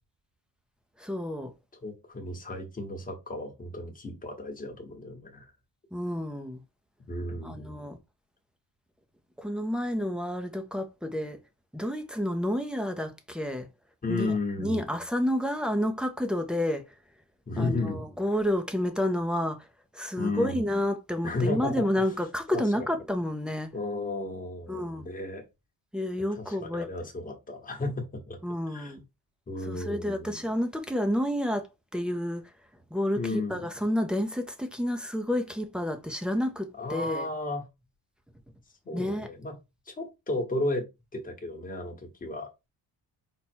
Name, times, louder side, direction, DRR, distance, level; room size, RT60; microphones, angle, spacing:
voice 1, 1.0-1.5 5.9-6.6 7.4-8.0 9.4-11.4 11.7-13.7 14.1-16.8 17.6-19.7 19.9-23.7 24.7-25.0 25.9-26.9 28.4-29.0 29.6-32.5 32.9-37.3 38.9-39.3, left 1 dB, ahead, 0.4 m, -30 dB
voice 2, 1.8-5.5 7.1-7.8 14.0-14.9 17.5-18.0 20.2-20.6 21.2-21.8 22.5-22.6 23.7-25.4 26.4-28.4 28.7-28.9 29.5-30.3 33.1-33.6 36.8-37.7 38.8-39.5 39.9-42.7, left 2 dB, 20° left, 1.1 m, -33 dB
5.5 x 2.1 x 4.3 m
cardioid pair, 180°, 38 cm